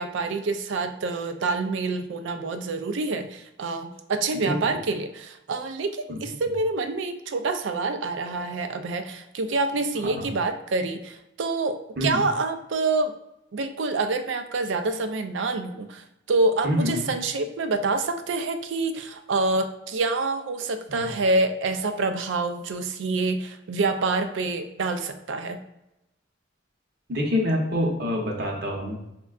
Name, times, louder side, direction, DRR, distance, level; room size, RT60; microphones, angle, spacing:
voice 1, 0.0-13.1 13.5-25.6, right 3 dB, 75° right, 8 dB, 0.4 m, -27 dB
voice 2, 4.3-4.8 6.1-6.2 10.0-10.3 12.0-12.2 16.6-17.1 20.9-21.1 27.1-29.0, left 1 dB, 55° right, -1 dB, 0.8 m, -26 dB
5.1 x 2.2 x 2.3 m, 0.88 s
head